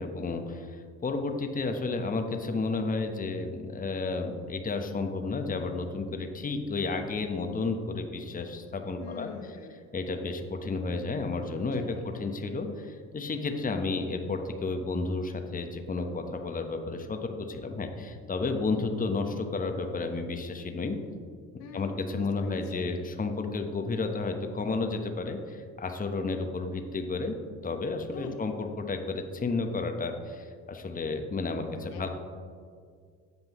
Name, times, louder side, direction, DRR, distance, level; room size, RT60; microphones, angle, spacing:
voice 1, 0.0-9.3 9.9-21.0 21.7-27.4 27.6-32.1, left 3 dB, 20° left, 5 dB, 1.0 m, -32 dB
voice 2, 9.0-9.8 11.7-12.0 21.6-22.9 28.1-28.4 31.6-32.1, left 6 dB, 70° left, 4 dB, 1.0 m, -44 dB
16.0 x 5.3 x 3.0 m, 2.1 s
hypercardioid pair, 60°, 39 cm